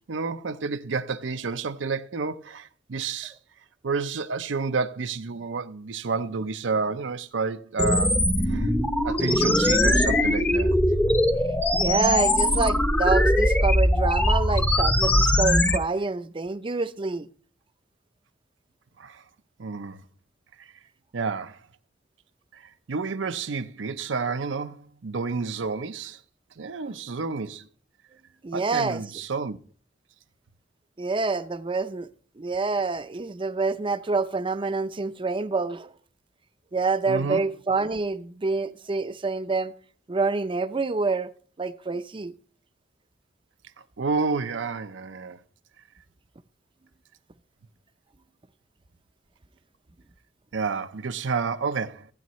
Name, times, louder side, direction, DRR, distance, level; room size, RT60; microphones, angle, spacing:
voice 1, 0.0-3.3 3.8-8.2 8.5-8.7 9.0-10.8 19.0-19.2 19.6-20.0 20.6-20.7 21.1-21.6 22.5-22.6 22.9-26.2 26.6-27.7 28.5-29.6 37.1-37.4 44.0-45.4 50.5-52.1, right 4 dB, 75° right, 0.6 m, -30 dB
sound 1, 7.8-15.8, left 1 dB, 10° left, 0.7 m, -21 dB
voice 2, 11.7-17.3 28.4-29.0 31.0-32.1 32.4-35.9 36.7-39.7 40.1-41.3 41.6-42.3, right 4 dB, 25° right, 0.5 m, -27 dB
15.5 x 9.3 x 3.1 m
head